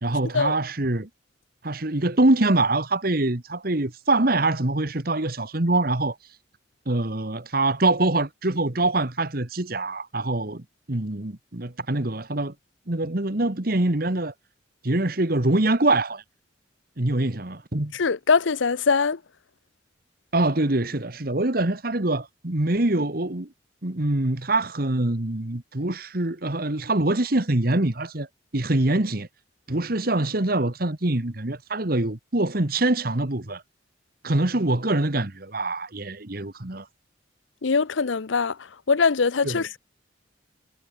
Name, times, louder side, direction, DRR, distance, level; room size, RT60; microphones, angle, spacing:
voice 1, 0.0-1.1 1.6-6.2 6.9-10.6 10.9-12.5 12.9-14.3 14.8-16.2 17.0-17.9 20.3-23.5 23.8-28.3 28.5-29.3 29.7-33.6 34.2-36.9 39.4-39.6, right 2 dB, 50° right, 1.6 m, -24 dB
voice 2, 17.9-19.2 37.6-39.8, left 5 dB, 80° left, 0.7 m, -22 dB
head